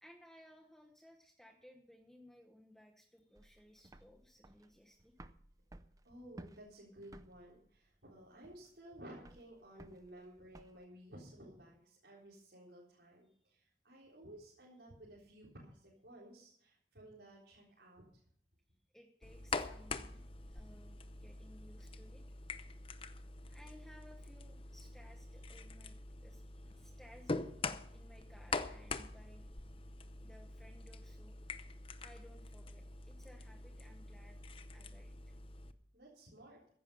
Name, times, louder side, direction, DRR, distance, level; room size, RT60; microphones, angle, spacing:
voice 1, 0.0-5.1 13.3-13.5 18.9-20.2 20.5-22.2 23.5-27.6 27.9-29.5 30.2-31.4 32.0-35.3, equal, 5° left, 3 dB, 1.1 m, -61 dB
sound 1, 3.4-10.8, right 1 dB, 20° right, 0.6 m, -57 dB
voice 2, 6.0-18.0 35.9-36.6, right 1 dB, 70° right, -6 dB, 4.0 m, -55 dB
sound 2, 19.2-35.7, left 3 dB, 30° left, 0.7 m, -45 dB
15.0 x 10.5 x 5.6 m, 0.66 s
head